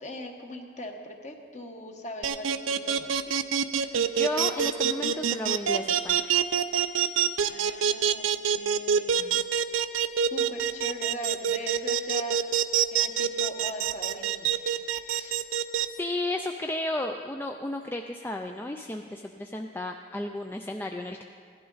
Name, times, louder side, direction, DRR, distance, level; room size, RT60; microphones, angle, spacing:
voice 1, 0.0-3.3 7.5-9.1 10.2-12.4 12.9-15.4, equal, 35° left, 3 dB, 1.1 m, -40 dB
sound 1, 2.2-15.8, right 8 dB, 90° right, 0.5 m, -25 dB
voice 2, 3.8-6.4 9.2-9.4 16.0-21.2, left 1 dB, 10° left, 3 dB, 0.3 m, -33 dB
16.5 x 12.0 x 4.0 m, 2.3 s
head